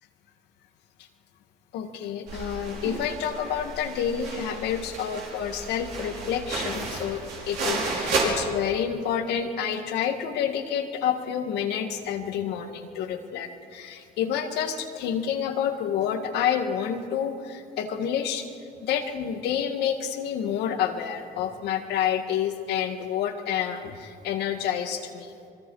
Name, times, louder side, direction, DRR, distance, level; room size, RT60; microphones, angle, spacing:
voice 1, 1.7-18.5 18.8-25.3, left 8 dB, 80° left, 5 dB, 1.9 m, -29 dB
sound 1, 2.3-8.2, right 4 dB, 80° right, 5.5 m, -33 dB
26.5 x 22.0 x 4.9 m, 2.4 s
cardioid pair, 110°, 17 cm